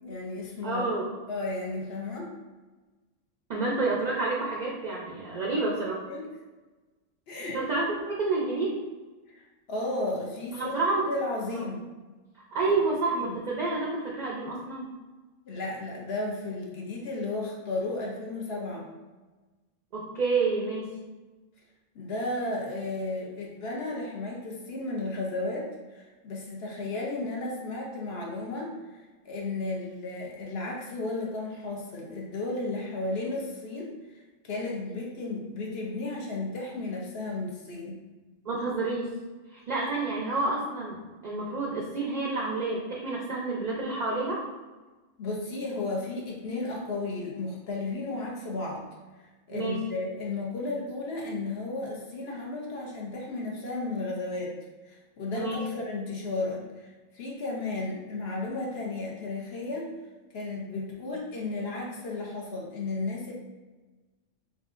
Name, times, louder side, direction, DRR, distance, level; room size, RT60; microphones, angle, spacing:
voice 1, 0.0-0.9 1.3-2.3 6.1-6.3 7.3-7.6 9.3-11.8 12.7-12.8 13.1-13.2 15.5-18.9 21.9-28.8 29.2-38.0 45.2-48.9 49.5-54.5 54.8-59.9 60.3-63.3, left 2 dB, 60° left, -2 dB, 0.9 m, -34 dB
voice 2, 0.6-1.1 3.5-6.0 7.5-8.8 10.5-11.1 11.5-11.6 12.3-14.9 19.9-20.9 38.4-39.1 39.5-44.4 49.5-49.8 55.3-55.6, right 3 dB, 50° right, -3 dB, 0.5 m, -29 dB
3.8 x 3.6 x 2.5 m, 1.2 s
omnidirectional pair, 1.3 m